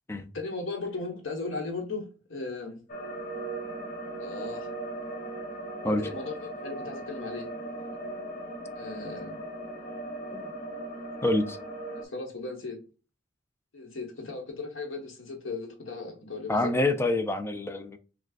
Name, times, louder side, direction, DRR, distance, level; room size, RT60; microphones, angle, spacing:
voice 1, 0.3-2.8 4.2-4.7 5.8-7.5 8.7-9.4 11.9-12.8 13.7-16.7, left 3 dB, 90° left, 1.2 m, -37 dB
sound 1, 2.9-12.0, right 2 dB, 45° left, 0.8 m, -38 dB
voice 2, 11.2-11.6 16.5-18.0, left 2 dB, 15° left, 0.4 m, -27 dB
6.3 x 2.3 x 2.4 m
head